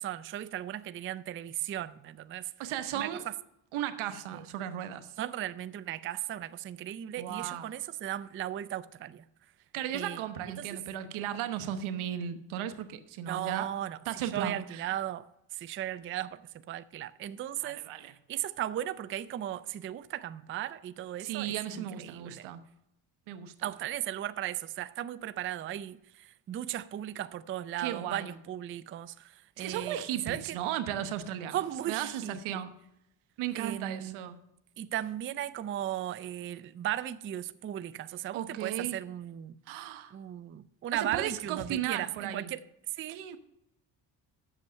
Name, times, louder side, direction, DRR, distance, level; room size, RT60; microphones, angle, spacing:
voice 1, 0.0-2.5 2.9-3.1 4.3-4.4 5.2-9.2 9.9-10.2 10.6-10.7 13.3-22.5 23.6-30.0 30.3-30.6 31.5-32.6 33.5-34.2 34.8-39.8 40.1-42.6 43.0-43.4, right 12 dB, 30° right, 0.3 m, -36 dB
voice 2, 2.6-3.2 3.7-5.1 7.2-7.7 9.7-13.7 14.1-14.9 17.6-18.1 21.2-22.6 23.3-23.7 27.8-28.3 29.6-32.7 33.4-34.4 38.3-39.0 39.7-40.1 40.9-42.5 43.1-43.4, right 10 dB, 85° right, 1.1 m, -36 dB
8.2 x 6.9 x 6.2 m
cardioid pair, 105°, 47 cm